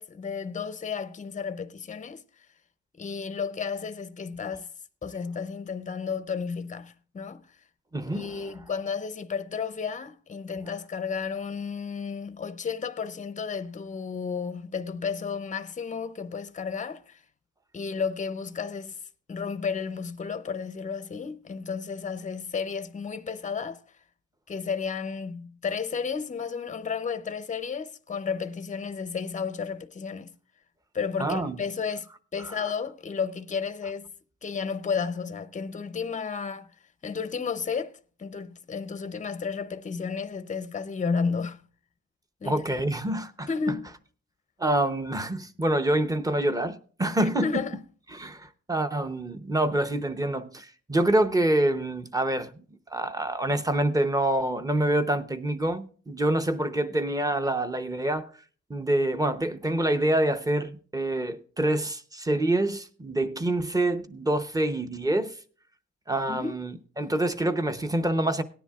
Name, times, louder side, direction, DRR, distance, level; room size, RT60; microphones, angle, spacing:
voice 1, 0.0-2.2 3.0-4.7 5.0-7.4 8.1-17.2 17.7-19.0 19.3-23.8 24.5-30.3 30.9-34.1 34.4-36.7 37.0-41.6 42.4-42.6 43.5-43.9 47.2-47.8 66.3-66.6, left 5 dB, 25° left, 0.5 m, -32 dB
voice 2, 7.9-8.4 31.2-31.6 32.4-32.6 42.4-43.8 44.6-47.6 48.1-52.5 52.9-58.3 58.7-65.3 66.1-68.4, right 1 dB, 10° right, 0.7 m, -26 dB
18.0 x 10.0 x 2.3 m
wide cardioid pair, 130°, 29 cm